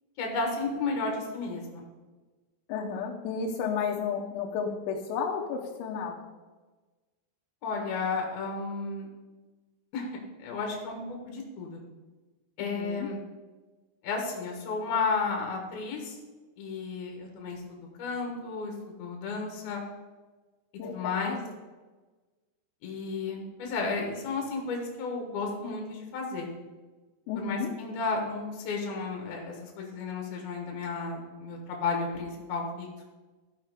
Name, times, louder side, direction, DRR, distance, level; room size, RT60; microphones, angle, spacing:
voice 1, 0.2-1.8 7.6-9.1 9.9-10.1 10.4-11.8 12.6-13.2 14.0-16.2 16.6-19.8 20.9-21.4 22.8-26.5 27.4-33.1, left 4 dB, 65° left, 1 dB, 2.7 m, -33 dB
voice 2, 2.7-6.2 12.6-13.1 20.8-21.4 27.3-27.7, left 6 dB, 85° left, -2 dB, 3.6 m, -32 dB
14.0 x 5.8 x 4.9 m, 1.3 s
omnidirectional pair, 5.9 m